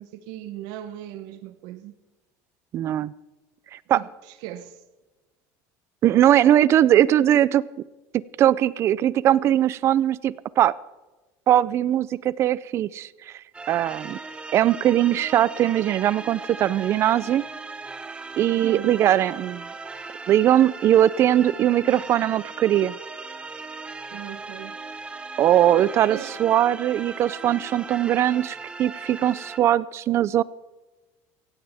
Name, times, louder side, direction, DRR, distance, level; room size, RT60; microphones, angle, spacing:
voice 1, 0.0-1.9 3.9-4.8 18.6-19.0 24.1-24.8 26.1-26.4, right 12 dB, 70° right, 0.9 m, -38 dB
voice 2, 2.7-3.1 3.9-4.0 6.0-7.6 8.4-10.7 11.5-13.1 13.7-14.2 14.5-17.5 18.4-19.7 20.3-22.9 25.4-30.4, right 11 dB, 40° right, 0.4 m, -20 dB
sound 1, 13.5-29.6, right 4 dB, 15° right, 0.9 m, -38 dB
17.0 x 16.0 x 3.5 m
cardioid pair, 145°, 7 cm